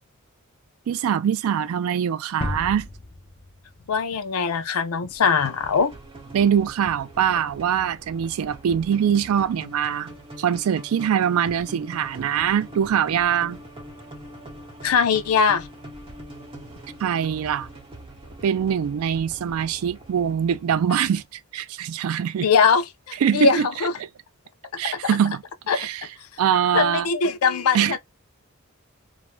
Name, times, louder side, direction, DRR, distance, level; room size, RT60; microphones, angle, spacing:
voice 1, 0.9-2.9 6.3-10.1 10.4-13.6 17.0-17.7 18.4-21.2 21.5-22.5 23.2-23.9 24.8-25.4 25.7-26.1 26.4-27.1 27.7-28.0, right 8 dB, 70° right, 0.3 m, -23 dB
sound 1, 2.4-5.1, left 2 dB, 25° left, 0.4 m, -35 dB
voice 2, 3.9-5.9 14.8-15.7 22.4-23.9 25.7-25.9 26.7-28.0, left 5 dB, 85° left, 0.4 m, -21 dB
sound 2, 5.1-21.2, right 1 dB, 25° right, 0.9 m, -43 dB
2.4 x 2.1 x 3.0 m
head